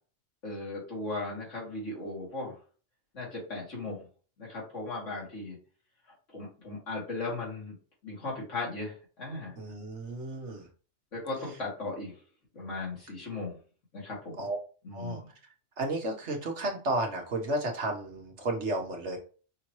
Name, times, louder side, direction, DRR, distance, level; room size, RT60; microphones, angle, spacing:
voice 1, 0.4-2.6 3.1-4.1 4.4-5.6 6.1-7.8 8.0-9.5 11.1-12.1 12.5-13.6 13.9-14.4 14.8-15.3, left 2 dB, 75° left, -4 dB, 2.7 m, -37 dB
voice 2, 9.5-10.7 14.4-14.6 14.9-15.2 15.8-19.2, right 2 dB, 65° right, 2 dB, 1.5 m, -32 dB
5.6 x 2.9 x 3.0 m, 0.38 s
omnidirectional pair, 1.3 m